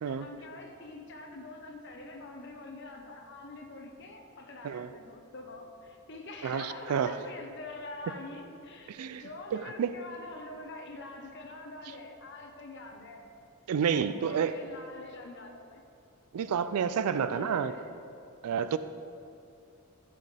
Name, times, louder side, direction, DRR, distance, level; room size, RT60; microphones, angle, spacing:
voice 1, 0.0-13.3 13.9-15.8 16.4-16.5 17.0-17.9, left 2 dB, 55° left, 3 dB, 1.0 m, -45 dB
voice 2, 6.4-7.2 8.9-10.0 11.9-12.0 13.7-14.6 16.3-17.8 18.4-18.8, right 7 dB, 90° right, 12 dB, 0.4 m, -30 dB
14.5 x 7.6 x 3.4 m, 2.6 s
head